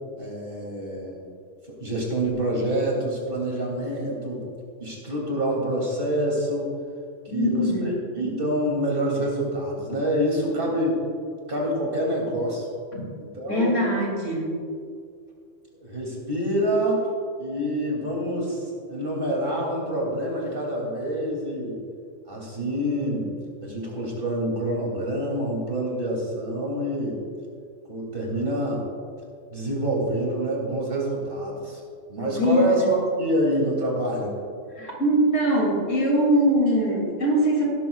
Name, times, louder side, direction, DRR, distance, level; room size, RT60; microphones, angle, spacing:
voice 1, 0.2-1.2 1.7-4.5 4.8-6.7 7.3-11.0 11.5-12.7 13.2-13.9 15.8-17.1 17.4-21.8 22.3-23.3 23.6-27.2 27.9-28.8 29.5-31.8 32.1-34.3, right 1 dB, 45° right, -3 dB, 3.0 m, -26 dB
voice 2, 7.3-7.9 12.9-13.0 13.5-14.6 32.3-33.0 34.8-37.6, equal, 70° left, -2 dB, 3.0 m, -22 dB
17.0 x 12.5 x 2.4 m, 2.2 s
omnidirectional pair, 1.3 m